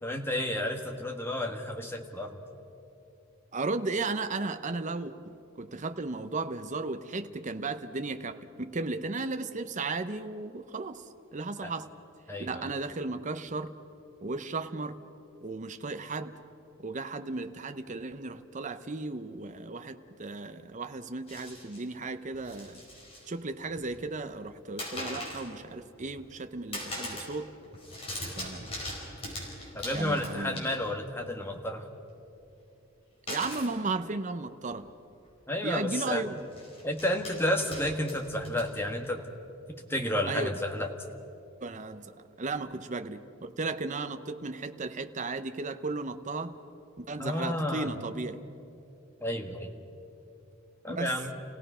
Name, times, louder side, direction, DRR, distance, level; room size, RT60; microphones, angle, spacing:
voice 1, 0.0-2.4 11.6-11.7 12.3-12.7 29.7-31.9 35.5-36.3 36.8-39.3 39.7-40.9 47.2-48.0 49.2-49.7 50.8-51.4, left 1 dB, 10° left, 2 dB, 1.5 m, -31 dB
voice 2, 3.5-11.0 11.3-11.9 12.4-13.7 14.2-15.0 15.4-16.4 16.8-22.8 23.3-27.5 28.4-28.7 29.9-30.7 33.3-34.9 35.6-36.5 40.3-40.5 41.6-42.1 42.4-46.6 47.0-48.4 50.9-51.1, right 3 dB, 35° right, 9 dB, 0.7 m, -35 dB
sound 1, 21.3-21.8 22.3-23.3 23.6-24.1 24.8-25.5 25.9-26.4 26.7-27.4 27.6-31.0 33.3-33.7 34.7-34.8 35.1-35.3 36.4-39.1, left 1 dB, 25° left, 5.1 m, -40 dB
28.5 x 17.0 x 5.6 m, 2.8 s
head